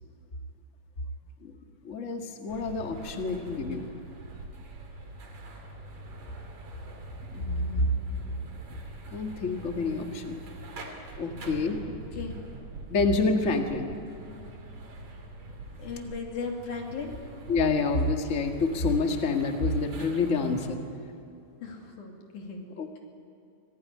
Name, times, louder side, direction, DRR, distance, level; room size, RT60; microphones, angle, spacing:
voice 1, 1.8-3.9 7.3-7.9 9.1-10.4 11.2-11.8 12.9-13.9 17.5-20.8 22.8-23.0, left 3 dB, 30° left, 4 dB, 1.5 m, -27 dB
sound 1, 2.5-20.7, right 2 dB, 65° right, 4.2 m, -44 dB
voice 2, 15.8-17.2 21.6-22.7, left 4 dB, 65° left, 1 dB, 4.0 m, -37 dB
25.5 x 17.5 x 9.8 m, 2.6 s
omnidirectional pair, 3.8 m